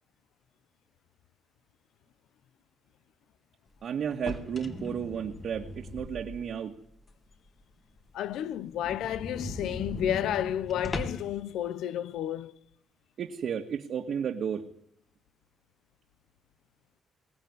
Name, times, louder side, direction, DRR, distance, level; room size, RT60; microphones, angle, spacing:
voice 1, 3.8-6.7 13.2-14.7, right 7 dB, 60° right, 1.9 m, -33 dB
sound 1, 4.1-6.7 7.1-7.2 7.6-7.7 8.0-8.1 8.3-8.4 8.7-11.4, left 2 dB, 35° left, 3.4 m, -39 dB
voice 2, 8.1-12.6, left 11 dB, 85° left, 1.0 m, -31 dB
22.5 x 18.5 x 9.8 m
cardioid pair, 90°, 0 cm